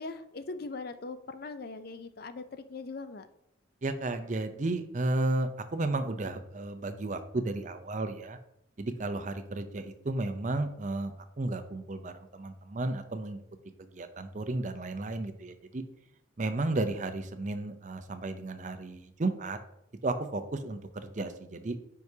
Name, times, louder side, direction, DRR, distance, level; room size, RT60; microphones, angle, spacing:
voice 1, 0.0-3.3, left 3 dB, 50° left, 10 dB, 0.5 m, -40 dB
voice 2, 3.8-8.4 8.8-13.4 13.8-15.8 16.4-19.6 20.0-20.8 21.2-21.8, right 2 dB, 35° right, 8 dB, 0.5 m, -33 dB
9.5 x 4.7 x 2.8 m, 0.78 s
head